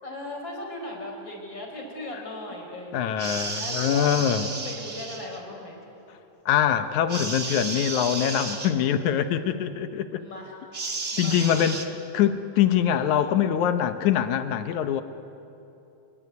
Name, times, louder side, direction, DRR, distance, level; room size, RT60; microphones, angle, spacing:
voice 1, 0.0-3.2 3.6-5.8 8.7-9.0 10.2-10.6 11.1-11.9, left 1 dB, 30° left, 1 dB, 5.4 m, -38 dB
voice 2, 2.9-4.5 6.5-10.2 11.2-15.0, left 9 dB, 70° left, 10 dB, 2.1 m, -24 dB
sound 1, 3.2-5.4 7.1-8.7 10.7-11.9, right 3 dB, 35° right, 1.1 m, -33 dB
28.0 x 21.5 x 9.5 m, 2.8 s
omnidirectional pair, 3.9 m